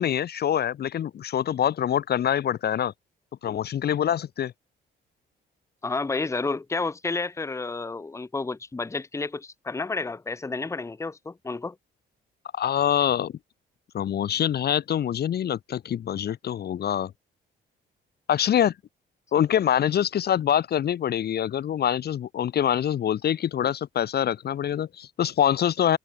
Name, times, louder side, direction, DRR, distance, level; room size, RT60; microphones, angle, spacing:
voice 1, 0.0-2.9 3.4-4.5 12.6-13.3 13.9-17.1 18.3-18.7 19.3-26.0, left 10 dB, 55° left, 0.8 m, -25 dB
voice 2, 5.8-11.8, left 3 dB, 15° left, 0.8 m, -30 dB
cardioid pair, 90°, 20 cm